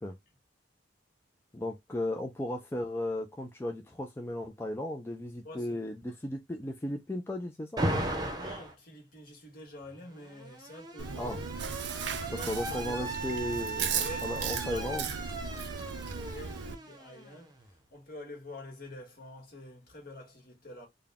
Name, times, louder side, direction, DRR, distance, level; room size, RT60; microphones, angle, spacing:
voice 1, 1.5-7.8 11.2-11.4 12.3-15.1, left 1 dB, 15° left, 0.4 m, -35 dB
voice 2, 5.4-5.8 8.3-11.4 12.4-13.1 13.8-15.2 16.1-20.9, left 1 dB, 55° left, 1.6 m, -47 dB
Alarm, 7.8-8.7 10.0-17.7, right 1 dB, 25° right, 0.7 m, -37 dB
Chewing mastication, 11.0-16.7, right 6 dB, 75° right, 0.5 m, -36 dB
3.9 x 2.2 x 3.5 m
head